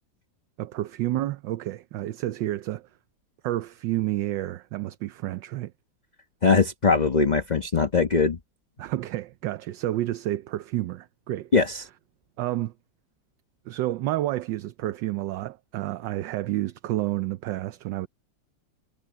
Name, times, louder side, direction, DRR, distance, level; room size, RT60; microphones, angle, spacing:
voice 1, 0.6-2.9 3.4-5.7 8.8-11.5 12.4-12.7 13.7-18.1, right 15 dB, 75° right, 1.3 m, -30 dB
voice 2, 6.4-8.4 11.5-11.8, left 4 dB, 30° left, 1.0 m, -21 dB
omnidirectional pair, 2.1 m